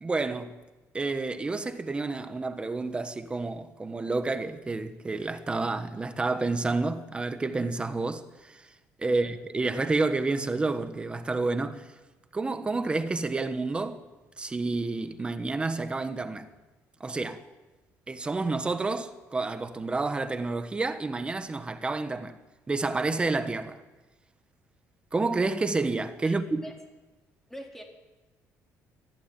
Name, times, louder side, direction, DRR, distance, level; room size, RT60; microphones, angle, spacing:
voice 1, 0.0-0.6 0.9-8.7 9.0-11.9 12.3-14.0 14.4-16.5 17.0-17.4 18.1-22.4 22.7-23.8 25.1-26.6, right 3 dB, 20° right, 1.4 m, -29 dB
voice 2, 26.2-26.7 27.5-27.8, equal, 5° left, 4.2 m, -44 dB
23.0 x 15.5 x 9.2 m
cardioid pair, 140°, 6 cm